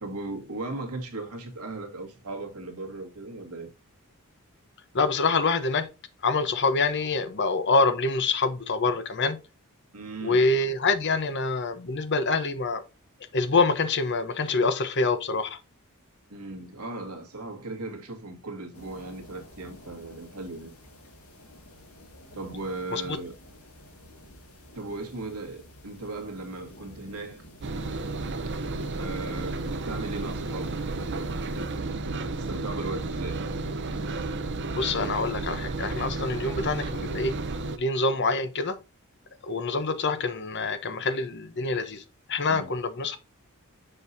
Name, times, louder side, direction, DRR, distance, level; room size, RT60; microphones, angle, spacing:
voice 1, 0.0-3.7 9.9-10.5 16.3-20.7 22.3-23.3 24.7-27.5 29.0-31.7 32.0-33.4 35.0-35.2 42.5-42.7, right 2 dB, 80° right, 1.8 m, -37 dB
voice 2, 4.9-5.9 6.2-9.4 10.2-12.8 13.3-15.6 22.9-23.2 34.7-37.4 37.8-38.8 39.4-42.0 42.3-43.2, left 3 dB, 50° left, 0.9 m, -26 dB
sound 1, 18.7-31.8, left 1 dB, 85° left, 2.7 m, -51 dB
Engine, 27.6-37.8, right 3 dB, 50° right, 0.7 m, -32 dB
6.9 x 5.5 x 2.7 m
head